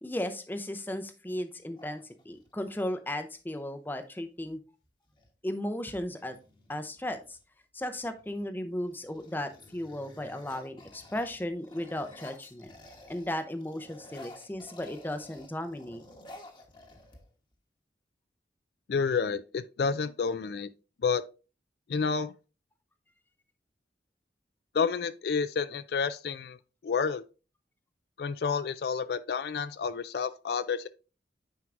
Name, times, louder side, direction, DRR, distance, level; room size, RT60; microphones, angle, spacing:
voice 1, 0.0-4.6 5.4-6.4 6.7-7.4 7.7-12.7 13.1-16.0, left 1 dB, 10° left, 0.5 m, -35 dB
sound 1, 1.7-2.7 4.4-4.5 4.8-5.3 5.9-7.4 8.0-8.4 8.8-13.3 13.6-17.5, left 2 dB, 25° left, 1.1 m, -52 dB
voice 2, 18.9-20.7 21.0-21.2 21.9-22.3 24.7-26.6 26.8-27.2 28.2-30.9, left 5 dB, 60° left, 0.3 m, -29 dB
9.2 x 4.5 x 2.5 m
head